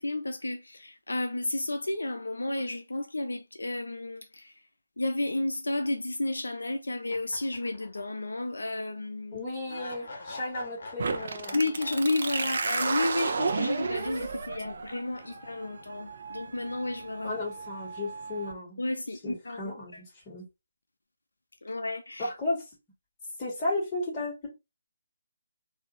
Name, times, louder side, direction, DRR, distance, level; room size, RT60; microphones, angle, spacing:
voice 1, 0.0-4.6 5.0-9.4 11.5-17.4 18.8-20.0 21.6-22.3, left 2 dB, 80° left, 0.6 m, -32 dB
sound 1, 7.1-8.4 8.7-8.8 9.7-14.0, left 2 dB, 55° left, 1.2 m, -45 dB
voice 2, 9.3-11.6 17.2-18.8 19.2-20.5 22.2-22.7 23.4-24.5, left 2 dB, 25° left, 2.4 m, -34 dB
sound 2, 11.0-18.5, right 4 dB, 55° right, 0.8 m, -33 dB
4.1 x 2.8 x 3.2 m
figure-of-eight pair, 150°, 0 cm